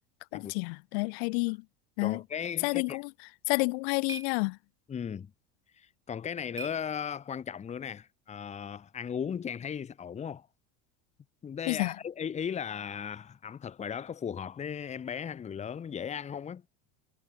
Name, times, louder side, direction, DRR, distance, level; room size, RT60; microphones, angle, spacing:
voice 1, 0.3-1.6 2.0-2.2 2.6-3.1 3.5-4.6 11.7-11.9, left 33 dB, 75° left, 1.6 m, -29 dB
voice 2, 2.0-3.0 4.9-5.3 5.8-10.5 11.4-16.6, left 8 dB, 20° left, 1.3 m, -37 dB
sound 1, 3.3-7.6, right 3 dB, 10° right, 1.9 m, -49 dB
cardioid pair, 140°, 32 cm